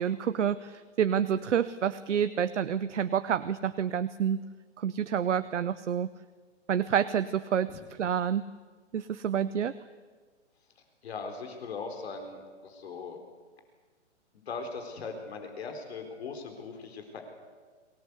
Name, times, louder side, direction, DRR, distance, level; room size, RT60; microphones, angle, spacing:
voice 1, 0.0-4.4 4.8-6.1 6.7-8.4 8.9-9.7, right 8 dB, 75° right, 13 dB, 0.9 m, -28 dB
voice 2, 11.0-13.2 14.5-17.2, left 4 dB, 60° left, 5 dB, 4.1 m, -39 dB
23.5 x 18.5 x 8.2 m, 1.5 s
hypercardioid pair, 155°, 36 cm